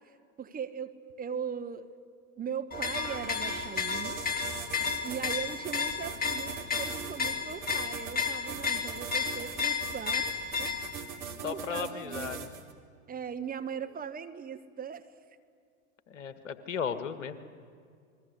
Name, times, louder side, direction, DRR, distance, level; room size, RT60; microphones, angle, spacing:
voice 1, 0.4-1.9 2.4-4.2 5.0-10.3 10.6-10.7 11.4-12.3 13.1-15.0, right 7 dB, 25° right, 8 dB, 1.4 m, -39 dB
sound 1, 2.7-11.0, left 6 dB, 25° left, 2.9 m, -33 dB
sound 2, 2.7-12.7, right 7 dB, 70° right, 2.6 m, -41 dB
voice 2, 11.4-12.5 16.1-17.4, left 7 dB, 75° left, 11 dB, 1.7 m, -35 dB
28.0 x 21.5 x 8.2 m, 2.2 s
hypercardioid pair, 85°, 38 cm